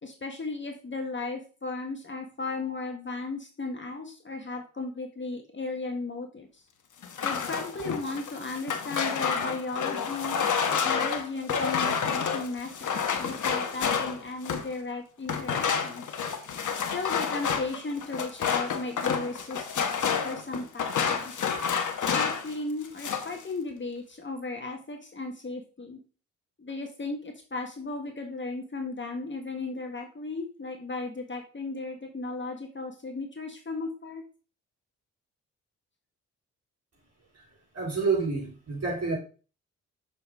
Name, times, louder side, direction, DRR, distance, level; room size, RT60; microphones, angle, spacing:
voice 1, 0.0-6.6 7.2-10.4 10.7-16.1 16.9-21.5 22.1-26.0 26.6-34.2, left 3 dB, 30° left, 3 dB, 1.7 m, -36 dB
sound 1, 7.0-14.7 15.3-22.5 22.8-23.4, left 6 dB, 50° left, 1.3 m, -29 dB
voice 2, 37.7-39.2, right 4 dB, 40° right, -2 dB, 4.3 m, -28 dB
6.9 x 5.5 x 3.8 m, 0.37 s
hypercardioid pair, 40°, 38 cm